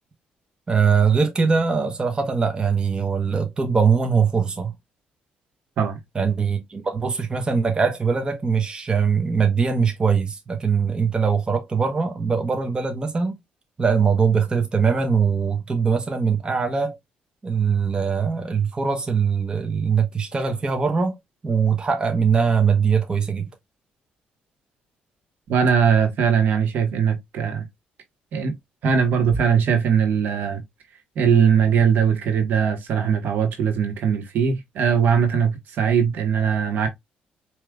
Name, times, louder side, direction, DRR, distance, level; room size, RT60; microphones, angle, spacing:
voice 1, 0.7-4.7 6.1-13.4 13.8-17.0 17.4-21.2 21.4-23.5, right 6 dB, 30° right, 1.0 m, -21 dB
voice 2, 25.5-27.6 28.3-28.5 28.8-30.6 31.1-36.9, right 7 dB, 70° right, 1.4 m, -20 dB
4.8 x 3.1 x 2.4 m
cardioid pair, 85°, 3 cm